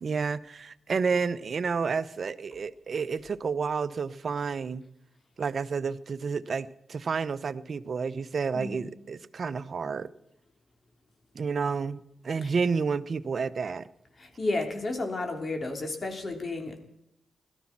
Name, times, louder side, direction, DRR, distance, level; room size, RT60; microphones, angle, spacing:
voice 1, 0.0-4.9 5.4-10.1 11.3-13.9, right 5 dB, 60° right, 15 dB, 0.8 m, -30 dB
voice 2, 8.5-8.8 12.4-12.5 14.2-16.8, left 2 dB, 45° left, 4 dB, 3.4 m, -32 dB
17.5 x 13.0 x 6.0 m, 0.79 s
supercardioid pair, 40°, 0 cm